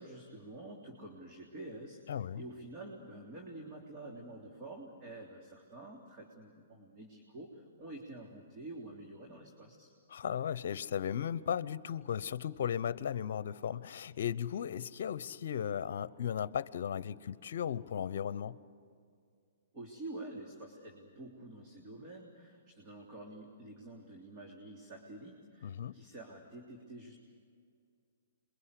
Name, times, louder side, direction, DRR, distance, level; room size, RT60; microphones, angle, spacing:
voice 1, 0.0-9.9 19.7-27.2, right 2 dB, 30° right, -1 dB, 3.3 m, -48 dB
voice 2, 2.1-2.4 10.1-18.6 25.6-25.9, left 8 dB, 60° left, 17 dB, 0.8 m, -36 dB
27.5 x 23.0 x 8.3 m, 2.2 s
hypercardioid pair, 140°, 0 cm